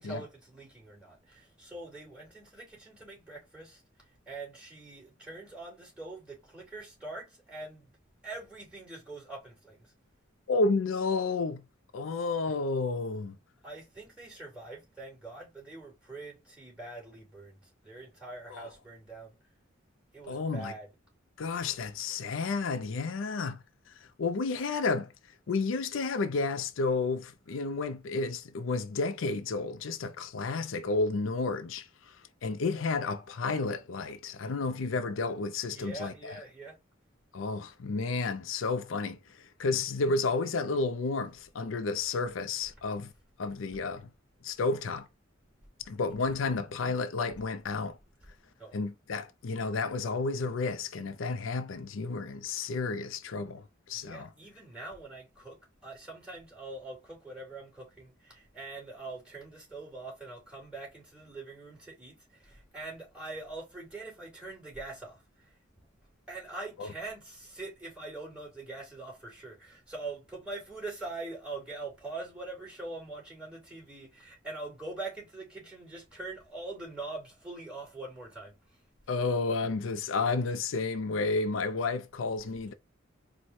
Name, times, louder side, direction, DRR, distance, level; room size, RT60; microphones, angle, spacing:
voice 1, 0.0-3.8 4.3-7.9 8.2-9.9 13.6-19.3 20.1-20.9 35.7-36.8 39.6-39.7 48.6-48.8 53.9-65.2 66.3-78.6, right 2 dB, 5° right, 2.7 m, -43 dB
voice 2, 10.5-11.6 11.9-13.4 18.5-18.7 20.3-20.7 21.4-23.6 24.2-25.1 25.5-32.1 32.4-36.4 37.3-43.1 43.4-44.1 44.4-45.1 45.9-48.0 48.7-54.3 66.8-66.9 79.1-82.7, left 3 dB, 85° left, 0.5 m, -31 dB
4.6 x 2.2 x 4.2 m
head